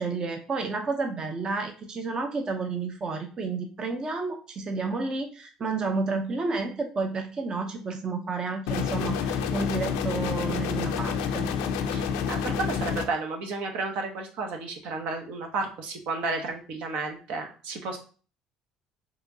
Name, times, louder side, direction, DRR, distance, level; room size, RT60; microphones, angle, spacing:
voice 1, 0.0-11.5, right 4 dB, 35° right, 4 dB, 0.6 m, -31 dB
sound 1, 8.7-13.1, left 7 dB, 90° left, 0.4 m, -28 dB
voice 2, 11.9-18.0, right 3 dB, 70° right, 3 dB, 0.9 m, -32 dB
4.9 x 2.9 x 2.7 m, 0.38 s
supercardioid pair, 80°, 2 cm